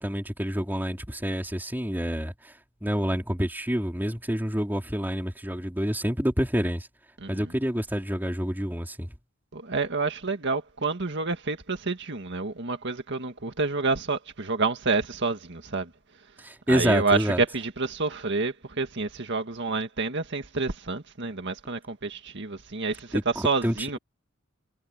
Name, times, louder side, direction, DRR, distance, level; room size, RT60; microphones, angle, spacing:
voice 1, 0.0-6.9 7.3-9.2 16.4-17.4 23.1-24.0, equal, 10° right, 4.0 m, -28 dB
voice 2, 9.5-15.9 16.7-24.0, right 3 dB, 60° right, 1.8 m, -28 dB
head